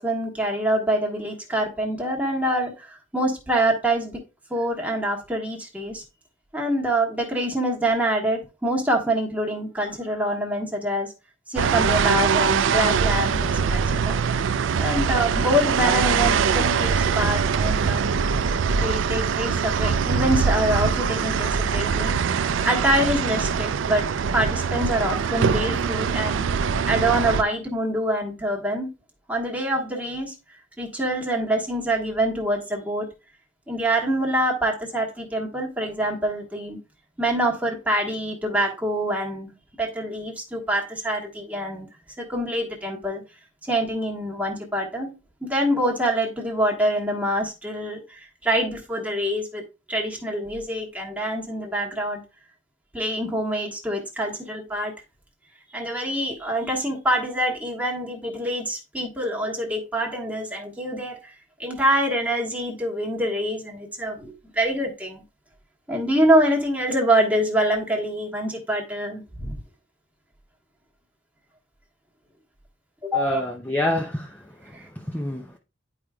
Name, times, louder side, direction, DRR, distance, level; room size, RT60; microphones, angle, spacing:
voice 1, 0.0-4.2 4.5-6.0 6.5-11.1 11.5-14.2 14.8-18.1 18.7-22.1 22.6-24.1 24.3-28.9 29.3-33.1 33.7-36.8 37.2-39.5 39.8-41.9 42.2-43.2 43.6-45.1 45.4-49.6 49.9-52.2 52.9-55.0 55.7-65.2 65.9-69.6 73.0-73.4 74.6-74.9, right 1 dB, 5° right, 1.3 m, -25 dB
sound 1, 11.6-27.4, right 6 dB, 70° right, 0.4 m, -23 dB
voice 2, 73.1-74.4 74.7-75.6, left 1 dB, 10° left, 0.5 m, -27 dB
10.5 x 4.9 x 2.2 m
head